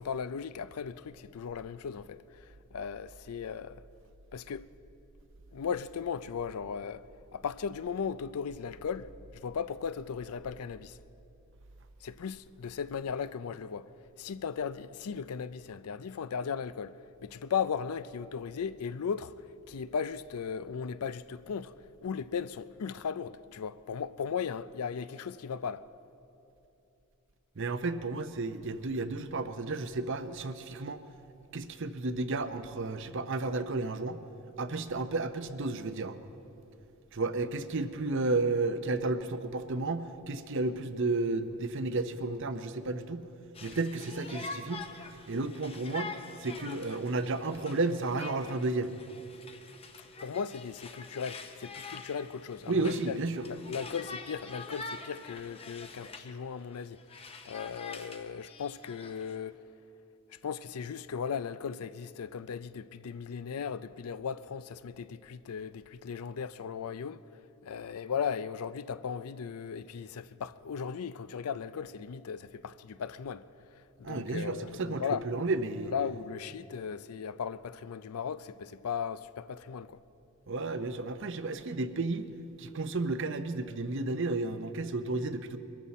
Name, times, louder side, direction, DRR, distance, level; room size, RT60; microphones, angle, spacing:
voice 1, 0.0-2.2 2.7-3.8 4.3-4.7 5.5-7.0 7.3-9.1 9.4-11.0 12.0-13.9 14.2-17.0 17.2-19.3 19.7-21.7 22.0-25.8 50.2-53.2 53.4-57.0 57.5-59.6 60.4-67.2 67.6-73.4 74.0-75.2 75.9-80.0, left 6 dB, 80° left, 0.4 m, -37 dB
voice 2, 27.6-31.0 31.5-34.2 34.6-36.2 37.1-43.2 43.6-44.8 45.3-46.1 46.4-48.9 52.7-53.5 74.0-75.9 80.5-82.3 82.6-85.6, right 3 dB, 55° right, 0.7 m, -32 dB
Conversation, 43.6-56.3 56.7-59.4, left 3 dB, 25° left, 0.7 m, -45 dB
23.0 x 13.5 x 4.2 m
head